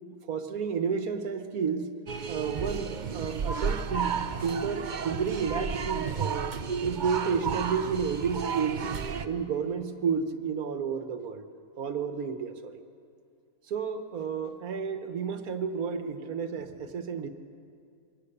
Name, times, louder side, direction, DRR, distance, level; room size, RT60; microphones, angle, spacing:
voice 1, 0.1-2.0 2.3-6.6 6.8-8.9 9.2-11.5 11.8-12.8 13.7-17.3, right 6 dB, 75° right, 9 dB, 1.6 m, -31 dB
sound 1, 2.1-9.3, right 6 dB, 45° right, 0.7 m, -32 dB
23.0 x 18.5 x 6.8 m, 2.3 s
omnidirectional pair, 1.5 m